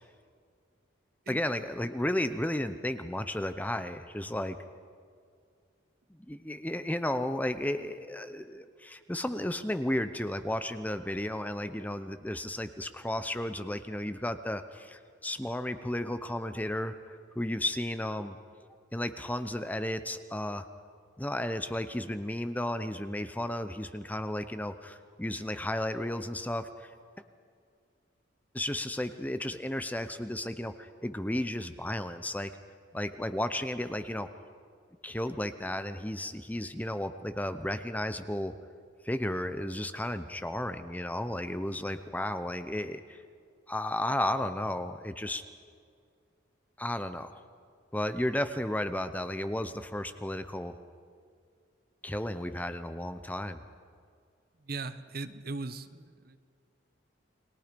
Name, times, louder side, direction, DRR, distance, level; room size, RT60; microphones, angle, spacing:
voice 1, 1.3-4.6 6.2-18.4 18.9-20.6 21.2-26.9 28.5-32.5 32.9-34.3 35.0-38.5 39.0-43.2 43.7-45.4 46.8-47.4 47.9-50.8 52.0-53.6, left 1 dB, 10° left, 10 dB, 0.7 m, -33 dB
voice 2, 54.7-56.4, right 3 dB, 50° right, 12 dB, 0.9 m, -39 dB
30.0 x 21.5 x 5.3 m, 2.2 s
head